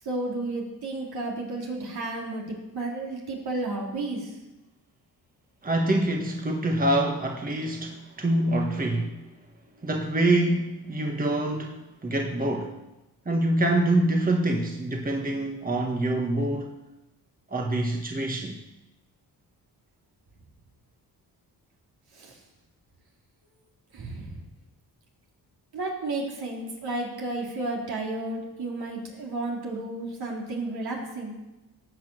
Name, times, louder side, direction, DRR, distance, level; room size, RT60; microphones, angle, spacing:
voice 1, 0.0-4.3 22.1-22.4 23.9-24.4 25.7-31.3, right 2 dB, 65° right, -2 dB, 3.8 m, -32 dB
voice 2, 5.6-9.2 9.8-12.8 13.2-16.7 17.5-18.6, right 1 dB, 20° right, 2 dB, 1.5 m, -25 dB
16.5 x 5.9 x 7.9 m, 1.0 s
cardioid pair, 95°, 40 cm